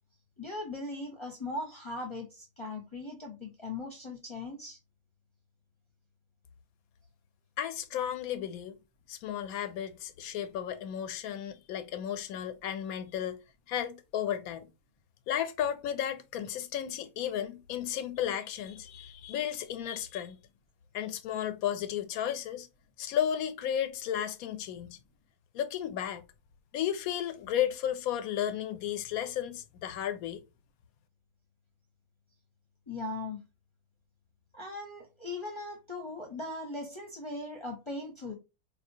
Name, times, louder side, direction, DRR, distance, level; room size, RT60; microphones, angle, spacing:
voice 1, 0.4-4.8 32.9-33.4 34.5-38.3, left 2 dB, 25° left, 0.8 m, -39 dB
voice 2, 7.6-8.7 9.1-13.4 13.7-14.7 15.3-20.4 20.9-22.7 23.0-25.0 25.5-26.3 26.7-30.4, left 10 dB, 85° left, 1.1 m, -33 dB
4.3 x 2.3 x 2.6 m
omnidirectional pair, 1.5 m